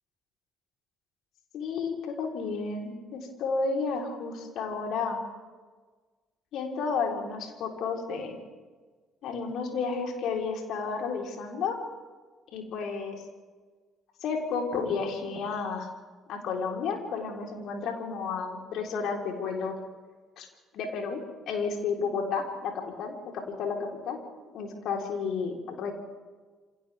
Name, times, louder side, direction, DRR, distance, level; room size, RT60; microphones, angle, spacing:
voice 1, 1.5-5.2 6.5-8.3 9.2-11.8 12.5-13.2 14.2-15.9 16.3-19.7 20.4-20.5 20.7-21.2 21.5-24.2 24.5-25.9, left 5 dB, 60° left, 1 dB, 4.1 m, -32 dB
28.0 x 26.5 x 3.6 m, 1.4 s
figure-of-eight pair, 50°, 0 cm